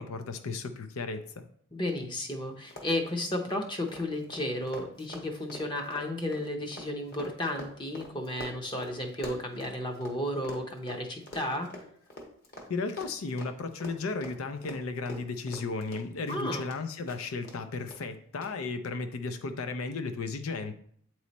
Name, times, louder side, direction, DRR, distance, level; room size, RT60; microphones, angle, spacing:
voice 1, 0.0-1.4 12.7-20.7, left 3 dB, 75° left, 8 dB, 0.5 m, -34 dB
voice 2, 1.7-11.7 16.3-16.6, left 1 dB, 20° left, 3 dB, 0.7 m, -33 dB
Run, 1.9-2.0 2.2-2.4 2.6-10.2 10.4-16.8 17.1-17.6 17.9-18.0 18.4-18.5, left 1 dB, 45° left, 1.2 m, -44 dB
8.3 x 3.1 x 4.1 m, 0.63 s
head